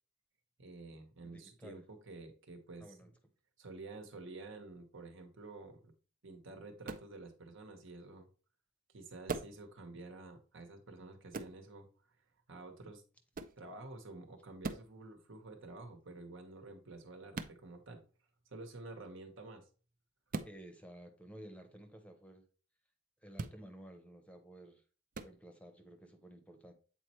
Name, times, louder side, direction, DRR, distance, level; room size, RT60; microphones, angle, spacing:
voice 1, 0.6-3.1 3.6-5.9 6.2-8.3 8.9-11.9 12.5-13.0 13.6-18.0 18.5-19.7, right 2 dB, 70° right, 4 dB, 1.3 m, -50 dB
voice 2, 1.2-1.8 2.8-3.1 20.4-22.5 23.2-24.8 25.2-26.7, right 1 dB, 5° left, 6 dB, 0.8 m, -53 dB
sound 1, 6.8-7.1 9.3-9.6 11.3-11.6 13.3-13.6 14.6-14.9 17.3-17.6 20.3-20.6 23.3-23.6 25.1-25.3, right 4 dB, 45° right, 0.5 m, -40 dB
7.9 x 4.3 x 3.1 m, 0.38 s
head